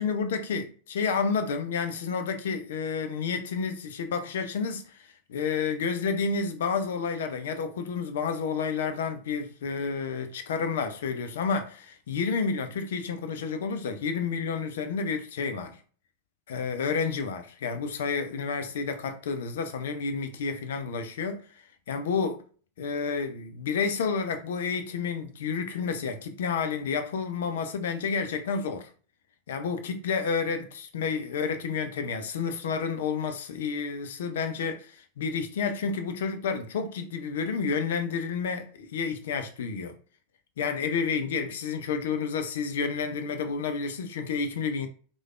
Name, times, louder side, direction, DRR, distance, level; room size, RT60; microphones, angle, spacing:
voice 1, 0.0-15.8 16.5-21.4 21.9-22.4 22.8-28.9 29.5-40.0 40.6-44.9, left 5 dB, 60° left, 0.4 m, -30 dB
3.2 x 2.2 x 2.4 m
figure-of-eight pair, 90°, 0 cm